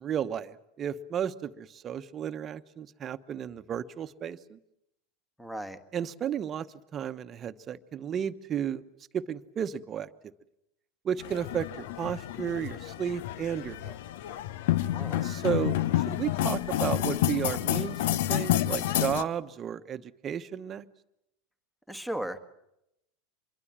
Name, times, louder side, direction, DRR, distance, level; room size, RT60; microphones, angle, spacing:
voice 1, 0.0-4.6 5.9-6.7 6.9-8.8 9.1-10.1 11.0-13.9 15.2-20.8, right 9 dB, 35° right, 12 dB, 1.1 m, -33 dB
voice 2, 5.4-5.8 14.8-15.2 21.9-22.4, right 1 dB, 5° left, 11 dB, 1.7 m, -36 dB
sound 1, 11.2-19.2, left 13 dB, 65° left, 0.8 m, -29 dB
26.0 x 22.5 x 7.4 m, 0.85 s
hypercardioid pair, 90°, 0 cm